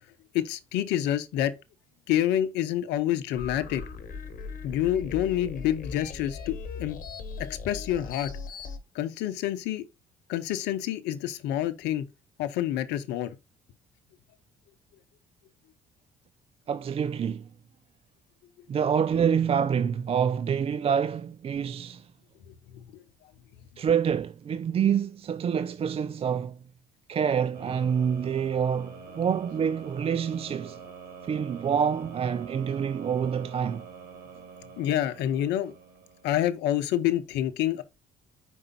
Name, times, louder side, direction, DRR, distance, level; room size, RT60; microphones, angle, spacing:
voice 1, 0.3-1.5 2.1-3.8 4.6-7.0 7.5-8.3 8.9-9.9 10.3-12.0 12.4-13.3 22.5-23.0 34.8-35.7 36.2-37.8, left 12 dB, 70° left, 0.8 m, -28 dB
sound 1, 3.3-8.8, left 5 dB, 50° left, 1.2 m, -39 dB
voice 2, 16.7-17.5 18.7-22.1 23.8-26.6 27.1-30.8 31.2-33.9, right 7 dB, 35° right, 0.4 m, -27 dB
sound 2, 27.5-36.5, right 5 dB, 65° right, 1.8 m, -46 dB
5.0 x 4.6 x 4.2 m
hypercardioid pair, 60°, 18 cm